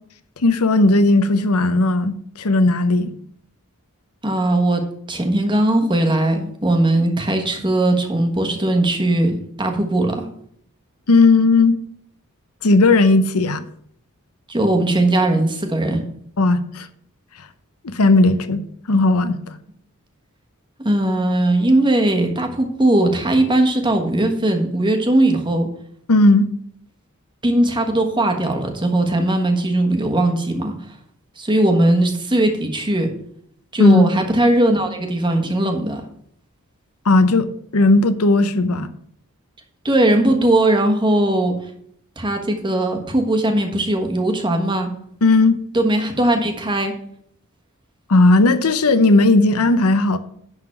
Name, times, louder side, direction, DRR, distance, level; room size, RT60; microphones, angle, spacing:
voice 1, 0.4-3.1 11.1-11.8 12.6-13.6 16.4-16.9 17.8-18.6 18.9-19.5 26.1-26.5 33.8-34.1 37.0-37.5 37.7-38.9 45.2-45.6 48.1-50.2, left 2 dB, 85° left, 0.8 m, -15 dB
voice 2, 4.2-10.3 14.5-16.0 20.8-25.7 27.4-30.7 31.4-33.1 33.7-36.0 39.8-41.5 42.2-44.9 45.7-46.9, right 1 dB, 20° right, 1.3 m, -19 dB
11.0 x 3.9 x 7.3 m
head